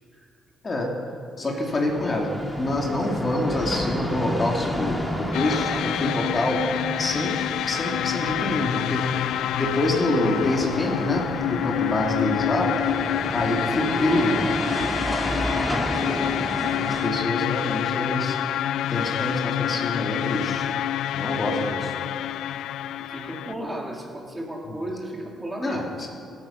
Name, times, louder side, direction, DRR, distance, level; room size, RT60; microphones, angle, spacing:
voice 1, 1.4-2.3 2.6-6.6 7.0-7.3 7.7-9.0 9.6-12.7 13.3-14.4 16.8-18.4 18.9-20.7 21.1-21.9 25.6-26.1, left 1 dB, 35° left, 0 dB, 2.6 m, -26 dB
sound 1, 1.5-17.1, equal, 10° left, 2.5 m, -31 dB
sound 2, 5.3-23.5, left 11 dB, 80° left, 0.4 m, -27 dB
voice 2, 13.1-13.5 15.3-16.2 21.2-21.3 23.0-25.9, right 1 dB, 15° right, -1 dB, 3.2 m, -36 dB
25.0 x 8.8 x 5.7 m, 2.3 s
cardioid pair, 90°, 0 cm